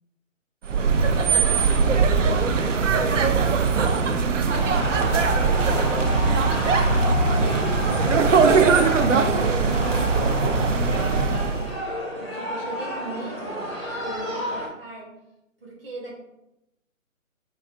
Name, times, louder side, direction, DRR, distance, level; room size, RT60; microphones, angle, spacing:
sound 1, 0.6-11.8, right 4 dB, 65° right, 0.5 m, -21 dB
voice 1, 1.0-3.4 7.9-8.4 9.1-11.7 12.2-15.1 15.6-16.1, right 2 dB, 45° right, -3 dB, 1.3 m, -38 dB
sound 2, 4.5-14.7, equal, 20° left, 0.6 m, -31 dB
4.6 x 2.5 x 2.7 m, 0.89 s
figure-of-eight pair, 145°, 41 cm